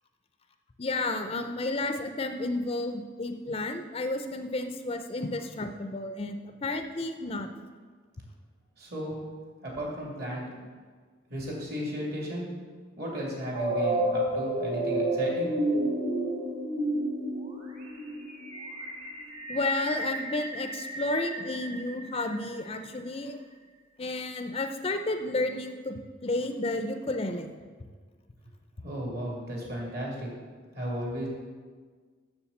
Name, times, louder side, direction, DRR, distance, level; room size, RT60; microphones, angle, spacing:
voice 1, 0.8-7.5 19.5-23.4 24.0-27.5, left 2 dB, 30° left, 7 dB, 0.5 m, -32 dB
voice 2, 8.8-9.2 9.6-10.6 11.3-12.5 13.0-15.5 28.8-30.3 30.7-31.3, equal, 55° right, -2 dB, 2.7 m, -35 dB
sound 1, 13.5-22.5, right 1 dB, 35° right, 1.6 m, -31 dB
7.1 x 6.7 x 7.1 m, 1.5 s
head